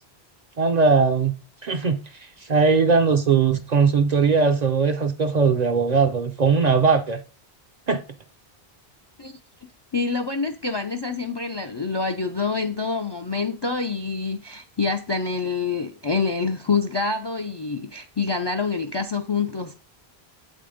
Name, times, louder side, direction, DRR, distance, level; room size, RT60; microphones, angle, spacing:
voice 1, 0.6-1.3 1.6-2.0 2.4-7.2 7.9-8.0, right 5 dB, 50° right, 0.5 m, -19 dB
voice 2, 9.9-19.7, left 4 dB, 40° left, 0.3 m, -26 dB
7.6 x 3.7 x 5.0 m
omnidirectional pair, 1.1 m